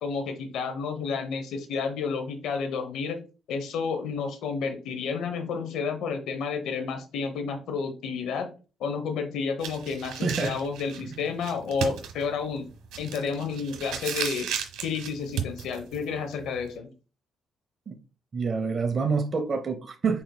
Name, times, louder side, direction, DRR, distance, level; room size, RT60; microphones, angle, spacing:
voice 1, 0.0-3.2 3.5-8.5 8.8-12.7 13.0-14.5 14.8-16.9, left 5 dB, 85° left, 0.8 m, -31 dB
sound 1, 9.6-16.7, right 8 dB, 90° right, 1.0 m, -35 dB
voice 2, 10.2-10.6 11.1-11.2 17.9-18.0 18.3-20.2, right 5 dB, 40° right, 0.6 m, -27 dB
5.5 x 4.4 x 2.2 m
cardioid pair, 90°, 0 cm